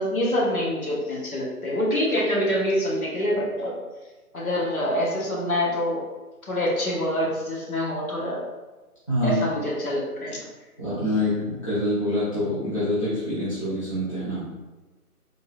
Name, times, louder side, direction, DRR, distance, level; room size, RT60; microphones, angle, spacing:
voice 1, 0.0-3.8 4.3-6.0 6.4-8.4 9.2-10.4, equal, 65° left, -4 dB, 1.2 m, -25 dB
voice 2, 9.1-9.4 10.8-14.5, left 1 dB, 20° left, -13 dB, 0.7 m, -26 dB
3.7 x 2.9 x 2.4 m, 1.2 s
figure-of-eight pair, 165°, 46 cm